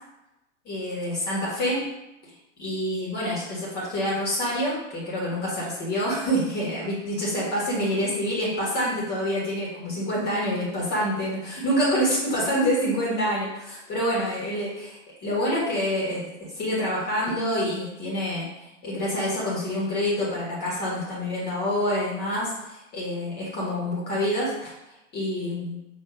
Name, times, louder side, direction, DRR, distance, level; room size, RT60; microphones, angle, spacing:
voice 1, 0.6-1.8 2.6-18.5 18.8-24.7 25.1-25.8, equal, 25° left, -5 dB, 1.4 m, -27 dB
5.5 x 2.7 x 3.0 m, 0.91 s
figure-of-eight pair, 100°, 38 cm